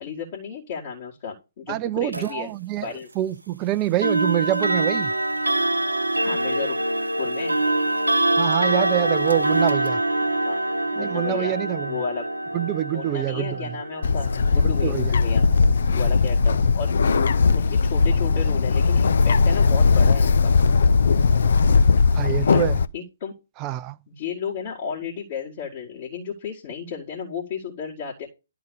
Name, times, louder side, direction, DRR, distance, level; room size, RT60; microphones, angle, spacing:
voice 1, 0.0-2.5 2.8-3.1 6.2-6.8 7.2-7.6 10.4-10.6 10.9-11.5 11.9-12.3 12.9-15.4 15.9-17.0 17.5-20.5 22.4-22.6 22.9-23.3 24.1-28.3, left 7 dB, 45° left, 2.2 m, -33 dB
voice 2, 1.7-2.9 3.2-5.1 8.3-10.0 11.0-12.0 12.5-13.8 14.6-15.1 22.1-22.8 23.6-24.0, right 14 dB, 25° right, 0.5 m, -26 dB
sound 1, 2.1-2.3 4.0-16.8, right 2 dB, 85° right, 0.7 m, -25 dB
Bird, 14.0-22.8, left 4 dB, 60° left, 0.5 m, -19 dB
11.5 x 3.9 x 5.3 m
figure-of-eight pair, 130°, 0 cm